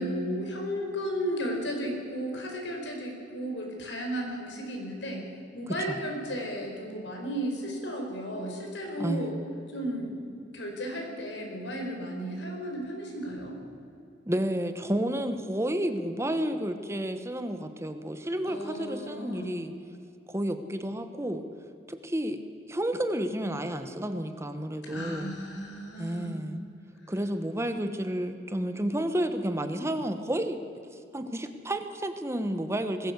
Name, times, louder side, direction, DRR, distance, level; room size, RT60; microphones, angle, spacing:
voice 1, 0.0-5.2 5.5-9.4 9.7-10.1 10.5-13.6 18.4-19.5 24.8-26.4, equal, 90° left, 2 dB, 4.6 m, -34 dB
voice 2, 9.0-9.4 14.3-19.7 20.3-21.4 21.9-22.4 22.7-25.3 26.0-26.6 27.1-30.6 31.1-33.1, right 1 dB, 15° right, 8 dB, 1.1 m, -31 dB
20.0 x 16.5 x 8.2 m, 2.6 s
head